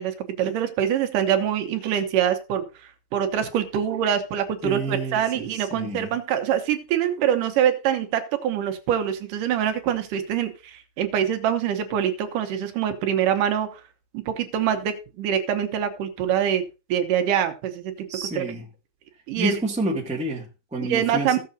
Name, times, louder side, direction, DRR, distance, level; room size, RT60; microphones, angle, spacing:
voice 1, 0.0-2.7 3.1-13.8 14.1-16.6 16.9-18.1 18.4-18.5 19.3-19.6 20.8-21.4, right 9 dB, 80° right, 2.5 m, -24 dB
voice 2, 4.6-6.1 18.1-18.7 19.3-21.4, right 2 dB, 5° right, 1.1 m, -29 dB
16.0 x 6.7 x 2.7 m
omnidirectional pair, 3.8 m